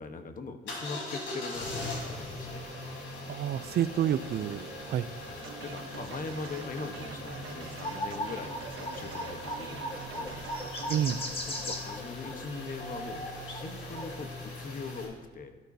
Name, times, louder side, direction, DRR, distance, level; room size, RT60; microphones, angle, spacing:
voice 1, 0.0-2.7 5.2-10.4 11.5-15.6, left 4 dB, 45° left, 7 dB, 1.1 m, -41 dB
sound 1, 0.7-15.0, left 1 dB, 80° left, 3.8 m, -41 dB
voice 2, 3.3-5.1 10.9-11.2, right 10 dB, 55° right, 15 dB, 0.4 m, -29 dB
sound 2, 5.4-11.3, right 6 dB, 85° right, 1.0 m, -45 dB
sound 3, 7.8-14.2, left 1 dB, 30° left, 1.6 m, -38 dB
13.0 x 11.5 x 2.7 m, 1.3 s
cardioid pair, 90°, 20 cm